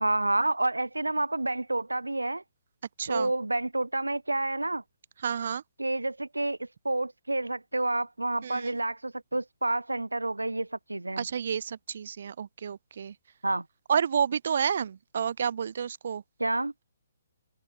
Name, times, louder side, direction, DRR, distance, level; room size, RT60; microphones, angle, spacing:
voice 1, 0.0-2.4 3.1-4.8 5.8-11.3 13.4-13.6 16.4-16.7, right 2 dB, 85° right, 0.9 m, -29 dB
voice 2, 3.0-3.3 5.2-5.6 8.4-8.7 11.2-13.1 13.9-16.2, right 7 dB, 55° right, 1.0 m, -30 dB
figure-of-eight pair, 130°, 0 cm